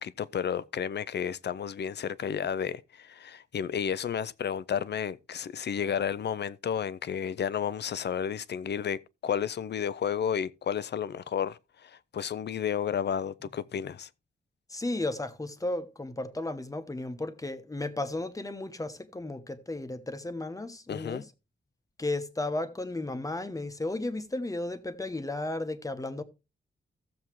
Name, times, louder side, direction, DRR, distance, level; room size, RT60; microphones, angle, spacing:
voice 1, 0.0-14.1 20.9-21.2, left 8 dB, 60° left, 0.5 m, -32 dB
voice 2, 14.7-21.2 22.0-26.2, left 2 dB, 15° left, 1.0 m, -34 dB
15.5 x 7.1 x 3.1 m
wide cardioid pair, 120°, 20 cm